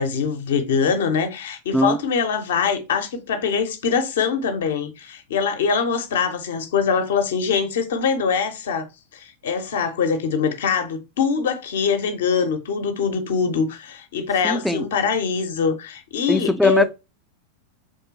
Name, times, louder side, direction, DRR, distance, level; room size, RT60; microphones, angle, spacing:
voice 1, 0.0-8.9 9.1-16.9, left 6 dB, 60° left, 0.8 m, -23 dB
voice 2, 14.4-14.9 16.3-16.9, left 1 dB, ahead, 0.4 m, -20 dB
5.2 x 3.6 x 2.8 m
figure-of-eight pair, 90°, 0 cm